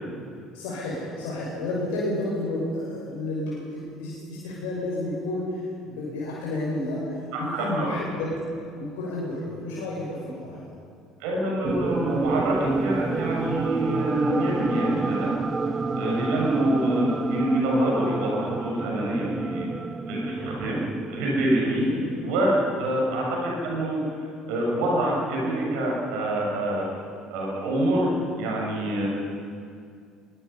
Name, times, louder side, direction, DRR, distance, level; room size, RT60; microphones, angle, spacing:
voice 1, 0.5-8.5 8.7-10.6 15.8-16.1 21.7-22.1 22.8-23.0, left 1 dB, 70° left, -6 dB, 6.3 m, -31 dB
voice 2, 7.3-7.9 11.2-15.4 15.9-19.7 20.1-21.9 22.2-24.0 24.5-26.8 27.3-29.1, right 1 dB, 65° right, -2 dB, 6.5 m, -26 dB
sound 1, 11.6-21.9, right 4 dB, 25° right, 0.7 m, -29 dB
23.5 x 22.0 x 5.7 m, 2.3 s
figure-of-eight pair, 60°, 0 cm